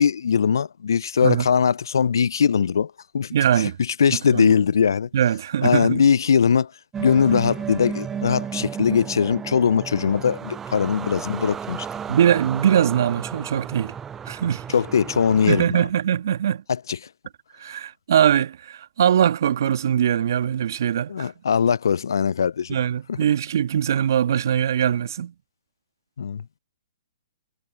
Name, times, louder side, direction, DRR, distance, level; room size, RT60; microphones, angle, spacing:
voice 1, 0.0-5.1 5.6-6.7 7.0-11.9 14.7-15.9 16.9-17.0 21.1-22.8 23.1-23.2 26.2-26.4, left 7 dB, 75° left, 0.5 m, -21 dB
voice 2, 3.3-3.8 4.1-4.5 5.1-6.0 12.1-13.9 14.3-14.7 15.5-16.6 17.6-21.3 22.7-25.3, right 9 dB, 60° right, 1.7 m, -21 dB
sound 1, 6.9-15.6, right 7 dB, 15° right, 0.4 m, -33 dB
hypercardioid pair, 130°, 2 cm